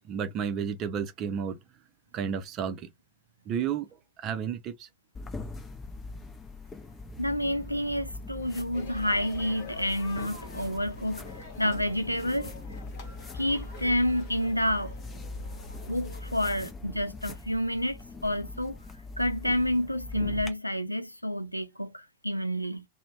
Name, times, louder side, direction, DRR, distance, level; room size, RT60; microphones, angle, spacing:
voice 1, 0.1-1.6 2.1-2.9 3.5-3.9 4.2-4.9 13.0-13.2, right 7 dB, 35° right, 0.5 m, -32 dB
sound 1, 5.1-20.5, left 3 dB, 15° left, 0.7 m, -42 dB
voice 2, 7.2-12.5 13.3-14.9 15.9-18.8 19.2-22.8, equal, 90° left, 0.3 m, -29 dB
sound 2, 8.7-16.4, left 3 dB, 45° left, 0.9 m, -45 dB
2.5 x 2.0 x 3.0 m
figure-of-eight pair, 90°, 0 cm